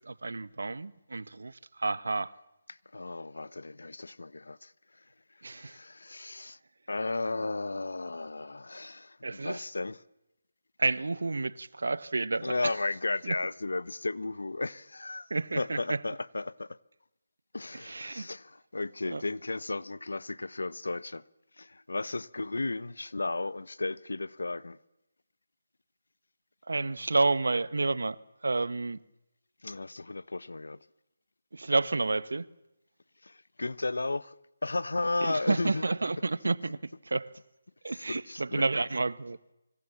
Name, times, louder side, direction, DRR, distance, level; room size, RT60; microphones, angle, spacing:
voice 1, 0.0-2.3 5.4-5.8 9.2-9.6 10.8-12.7 13.2-13.4 15.3-16.0 17.7-18.3 19.1-19.2 26.7-28.2 28.4-29.0 31.5-32.5 35.2-36.8 37.0-37.3 37.8-39.4, right 3 dB, 75° right, 1.3 m, -30 dB
voice 2, 2.7-4.7 5.5-6.6 6.9-10.0 12.4-15.3 15.6-16.7 17.5-21.2 21.6-24.8 29.6-30.8 33.2-34.3 34.6-35.8 38.1-38.6, left 2 dB, 80° left, 1.1 m, -34 dB
26.0 x 25.0 x 7.3 m
figure-of-eight pair, 160°, 0 cm